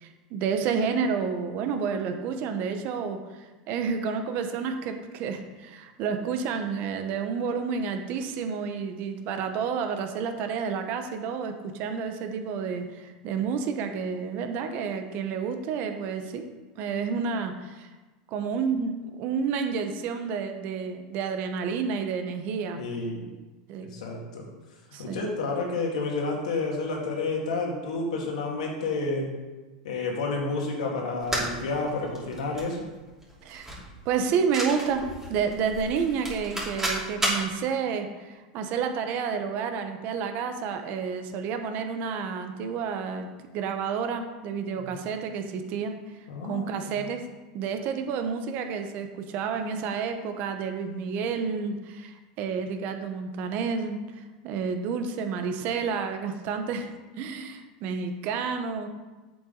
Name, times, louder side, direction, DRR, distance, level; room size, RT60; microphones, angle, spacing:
voice 1, 0.0-16.4 16.8-17.9 18.3-22.8 23.7-23.9 24.9-25.2 33.4-33.7 34.0-35.0 35.3-45.9 46.4-47.3 47.5-56.9 57.1-58.9, right 6 dB, 50° right, 6 dB, 1.1 m, -30 dB
voice 2, 22.7-23.3 23.8-24.5 25.0-29.3 29.8-32.9 44.7-44.9 46.3-47.0, left 3 dB, 85° left, 0 dB, 2.1 m, -30 dB
sound 1, 31.2-37.5, right 1 dB, 10° right, 2.9 m, -33 dB
7.7 x 7.3 x 4.0 m, 1.2 s
supercardioid pair, 120°, 4 cm